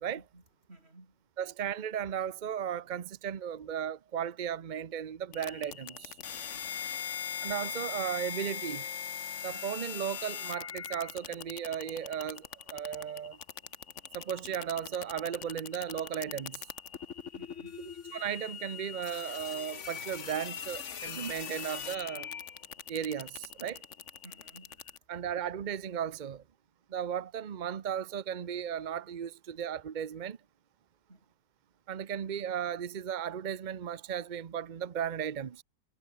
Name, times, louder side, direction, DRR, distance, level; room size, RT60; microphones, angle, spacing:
voice 1, 0.2-1.3 6.5-6.9 17.4-17.9 24.2-25.0 31.1-31.3, right 2 dB, 35° right, 5.3 m, -57 dB
voice 2, 1.4-6.1 7.4-8.9 9.4-13.4 14.1-16.6 18.1-22.3 22.9-23.8 25.1-26.4 26.9-30.4 31.9-35.6, right 8 dB, 60° right, 0.4 m, -35 dB
sound 1, 5.3-25.0, left 7 dB, 45° left, 1.3 m, -41 dB
omnidirectional pair, 1.9 m